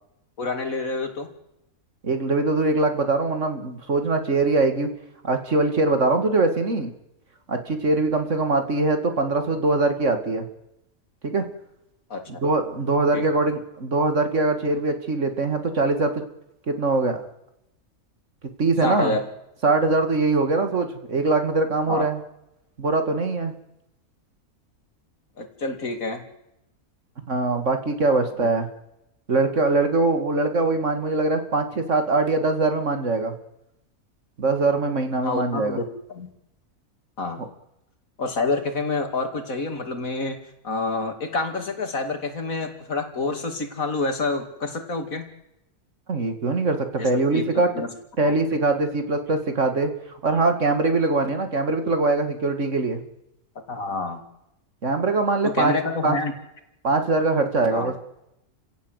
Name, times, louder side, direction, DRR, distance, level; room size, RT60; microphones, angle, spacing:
voice 1, 0.4-1.3 12.1-12.2 13.1-13.2 18.8-19.2 21.9-22.1 25.4-26.2 35.2-35.9 36.1-36.3 37.2-37.4 38.2-40.4 40.6-45.3 47.0-47.9 48.2-48.3 53.7-54.2 55.5-56.3 57.7-57.9, left 3 dB, 65° left, 6 dB, 2.9 m, -28 dB
voice 2, 2.0-4.9 5.2-6.9 7.5-10.5 11.2-11.5 12.3-16.2 16.7-17.2 18.6-19.2 19.6-22.2 22.8-23.5 27.3-28.7 29.3-33.3 34.4-35.8 46.1-47.7 48.2-49.9 50.2-53.0 54.8-55.7 56.0-56.2 56.8-58.0, right 3 dB, 55° right, 7 dB, 2.4 m, -22 dB
29.0 x 17.0 x 8.1 m, 0.89 s
omnidirectional pair, 1.5 m